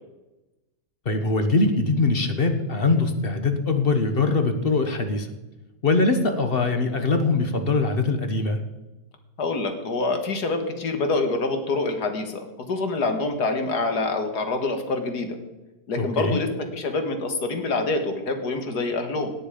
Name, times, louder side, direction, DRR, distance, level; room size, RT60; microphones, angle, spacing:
voice 1, 1.0-5.3 5.8-8.6 16.0-16.4, left 3 dB, 40° left, 7 dB, 1.2 m, -22 dB
voice 2, 9.4-15.4 15.9-19.3, left 3 dB, 90° left, 6 dB, 2.1 m, -26 dB
17.5 x 9.2 x 5.1 m, 1.1 s
omnidirectional pair, 1.7 m